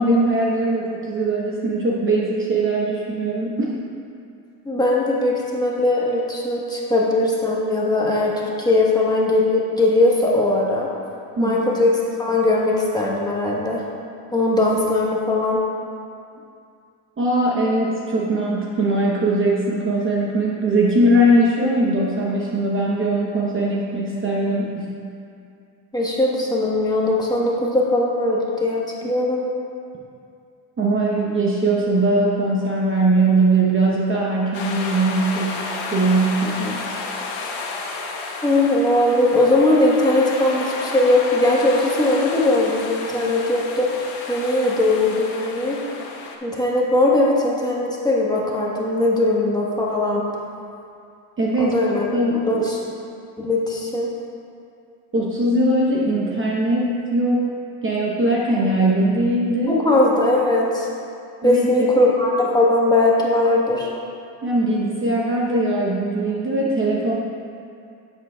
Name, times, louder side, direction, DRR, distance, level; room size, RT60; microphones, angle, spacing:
voice 1, 0.0-3.7 11.4-11.6 17.2-24.9 30.8-36.8 51.4-52.7 55.1-57.4 57.8-59.8 61.4-61.9 64.4-67.1, right 1 dB, 25° right, -4 dB, 0.9 m, -20 dB
voice 2, 4.6-10.9 11.4-11.9 12.2-13.8 14.3-15.6 25.9-29.4 38.4-45.8 46.4-50.2 51.6-52.1 52.4-52.8 53.4-54.1 59.7-60.9 61.4-63.9, left 2 dB, 10° left, -4 dB, 1.2 m, -19 dB
sound 1, 34.5-46.4, left 3 dB, 70° left, 1.1 m, -32 dB
11.0 x 7.9 x 2.3 m, 2.4 s
cardioid pair, 115°, 50 cm